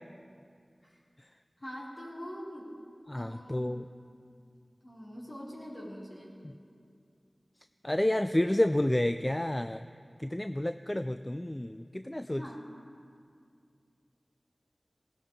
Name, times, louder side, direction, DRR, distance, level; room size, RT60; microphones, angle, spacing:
voice 1, 1.6-2.7 3.1-3.8 4.8-6.3 12.3-12.6, equal, 50° left, -7 dB, 4.8 m, -43 dB
voice 2, 3.1-3.8 7.8-9.8 10.2-12.4, left 1 dB, 25° left, 10 dB, 0.3 m, -30 dB
19.5 x 17.5 x 3.4 m, 2.3 s
wide cardioid pair, 45°, 0 cm